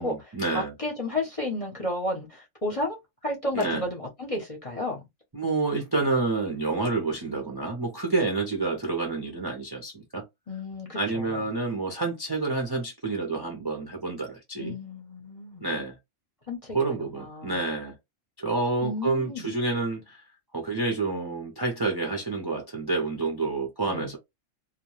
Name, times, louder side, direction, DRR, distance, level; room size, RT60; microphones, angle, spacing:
voice 1, 0.0-0.7 3.5-3.9 5.3-10.2 10.9-14.8 15.6-16.0 16.7-17.9 18.4-20.2 20.5-24.2, right 3 dB, 30° right, 0.4 m, -28 dB
voice 2, 0.5-3.0 3.2-5.0 10.5-11.4 14.6-15.6 16.5-17.6 18.8-19.5 23.9-24.1, left 2 dB, 35° left, 0.6 m, -32 dB
2.2 x 2.2 x 3.0 m
omnidirectional pair, 1.4 m